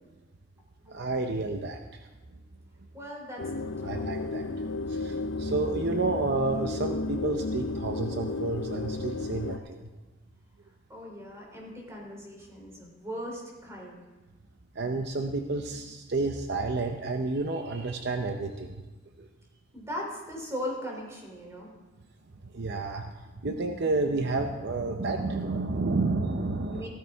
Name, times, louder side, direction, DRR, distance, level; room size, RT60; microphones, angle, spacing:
voice 1, 0.9-2.1 3.8-4.5 4.9-9.9 14.7-18.8 19.2-19.3 22.4-23.1 23.4-26.9, right 3 dB, 60° right, 5 dB, 0.7 m, -30 dB
voice 2, 2.9-3.5 3.8-4.1 10.9-14.0 19.7-21.7 26.6-26.9, equal, 15° right, -1 dB, 3.1 m, -38 dB
sound 1, 3.4-9.6, left 3 dB, 80° left, 0.7 m, -33 dB
15.5 x 13.5 x 3.5 m, 1.2 s
head